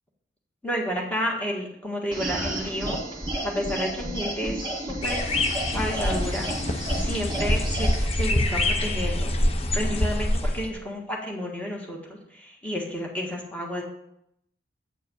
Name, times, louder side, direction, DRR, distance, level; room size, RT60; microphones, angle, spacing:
voice 1, 0.6-3.0 3.4-5.2 5.7-6.5 7.0-9.3 9.7-12.0 12.4-13.8, equal, 5° left, -2 dB, 1.7 m, -31 dB
sound 1, 2.1-8.0, right 1 dB, 25° right, 2.0 m, -31 dB
sound 2, 5.0-10.7, left 1 dB, 30° left, 0.7 m, -25 dB
8.7 x 4.6 x 7.1 m, 0.77 s
head